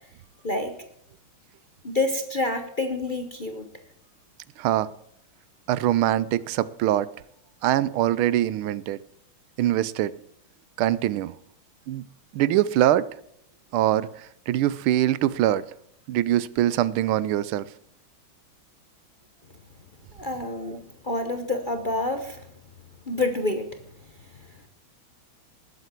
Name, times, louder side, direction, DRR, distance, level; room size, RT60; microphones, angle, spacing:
voice 1, 0.4-0.8 1.8-3.7 20.1-22.4 23.1-23.8, left 2 dB, 35° left, 0.8 m, -28 dB
voice 2, 4.6-4.9 5.7-7.1 7.6-9.0 9.6-10.1 10.8-11.3 11.9-12.0 12.3-13.1 13.7-15.6 16.1-17.7 20.7-20.8, right 13 dB, 85° right, 1.5 m, -23 dB
20.0 x 8.2 x 4.5 m
omnidirectional pair, 2.3 m